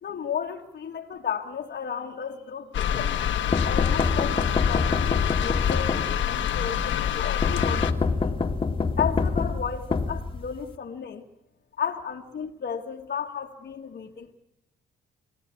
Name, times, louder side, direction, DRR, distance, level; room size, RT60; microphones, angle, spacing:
voice 1, 0.0-3.1 3.7-8.3 9.0-11.3 11.8-14.3, left 7 dB, 50° left, -1 dB, 1.7 m, -33 dB
sound 1, 2.7-7.9, left 9 dB, 70° left, 1.4 m, -26 dB
sound 2, 3.5-6.5 7.4-10.7, left 4 dB, 25° left, 2.0 m, -26 dB
28.0 x 16.5 x 8.5 m, 0.86 s
cardioid pair, 90°, 20 cm